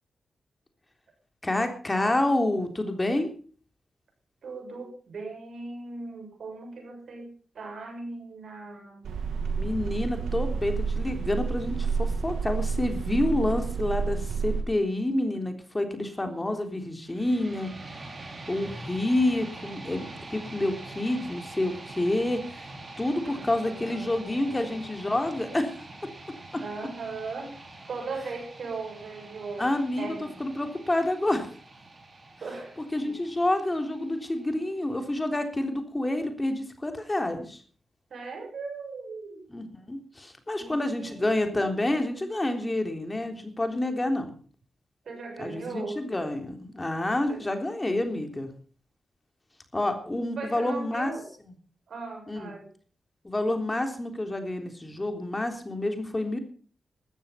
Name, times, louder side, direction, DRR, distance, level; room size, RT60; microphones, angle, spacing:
voice 1, 1.4-3.3 9.6-17.7 18.5-22.7 23.0-25.7 26.5-26.6 29.6-31.5 32.9-37.6 39.5-44.3 45.4-48.5 49.7-51.1 52.3-52.5 53.2-56.4, left 1 dB, 25° left, 6 dB, 3.6 m, -28 dB
voice 2, 4.4-9.1 23.2-25.0 26.6-27.6 27.9-29.7 30.0-30.3 32.4-32.8 33.0-33.2 38.1-39.4 40.6-41.8 45.1-46.0 47.3-47.4 50.4-51.3 51.9-52.7, right 3 dB, 70° right, 3 dB, 7.0 m, -39 dB
sound 1, 9.0-14.6, right 5 dB, 90° right, 2.1 m, -29 dB
sound 2, 17.0-35.1, right 2 dB, 45° right, 5.1 m, -45 dB
14.0 x 13.5 x 5.8 m, 0.42 s
cardioid pair, 60°, 0 cm